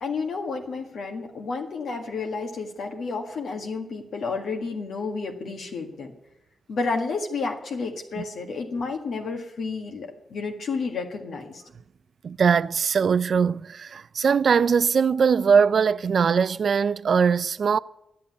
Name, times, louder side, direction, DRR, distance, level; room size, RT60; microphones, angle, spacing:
voice 1, 0.0-6.1 6.7-11.6, left 4 dB, 75° left, 1.7 m, -31 dB
voice 2, 12.2-17.8, right 6 dB, 60° right, 0.4 m, -21 dB
11.5 x 8.6 x 9.6 m
cardioid pair, 90°, 0 cm